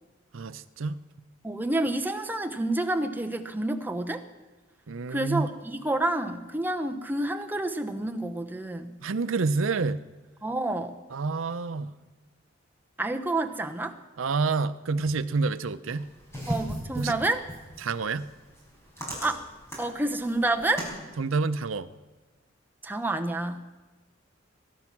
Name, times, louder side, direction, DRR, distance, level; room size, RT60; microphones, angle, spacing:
voice 1, 0.3-1.0 4.9-5.5 9.0-10.0 11.1-11.9 14.2-16.1 17.0-17.2 17.8-18.3 21.2-21.9, right 4 dB, 90° right, 13 dB, 0.6 m, -28 dB
voice 2, 1.4-4.2 5.1-9.0 10.4-10.9 13.0-14.0 16.5-17.4 19.2-19.5 19.8-20.9 22.8-23.6, right 2 dB, 10° right, 5 dB, 0.8 m, -29 dB
sound 1, 15.9-21.0, equal, 15° left, 5.0 m, -38 dB
20.5 x 11.0 x 6.0 m, 1.2 s
head